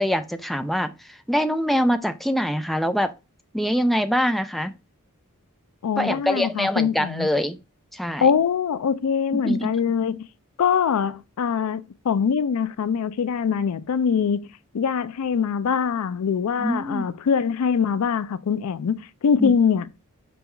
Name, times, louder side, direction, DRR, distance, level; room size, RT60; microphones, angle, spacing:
voice 1, 0.0-3.1 3.5-4.7 6.0-7.6 7.9-8.3 9.3-9.7 16.6-17.1 19.4-19.5, equal, ahead, 0.3 m, -24 dB
voice 2, 5.8-7.3 8.2-10.2 10.6-14.5 14.7-19.9, left 6 dB, 75° left, 0.4 m, -23 dB
5.4 x 2.3 x 4.1 m
head